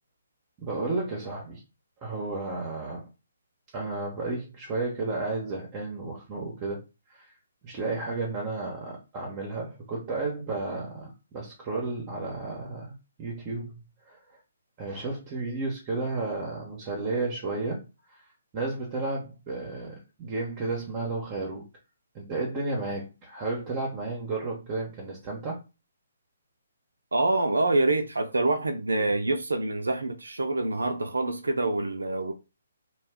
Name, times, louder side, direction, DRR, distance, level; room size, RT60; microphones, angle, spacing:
voice 1, 0.6-1.6 2.0-3.1 3.7-6.8 7.1-7.3 7.6-13.7 14.1-14.2 14.8-17.8 18.1-18.2 18.5-21.6 22.1-25.6, right 3 dB, 30° right, 0.8 m, -32 dB
voice 2, 27.1-32.3, right 2 dB, 85° right, 0.4 m, -26 dB
2.3 x 2.1 x 3.4 m
figure-of-eight pair, 140°, 0 cm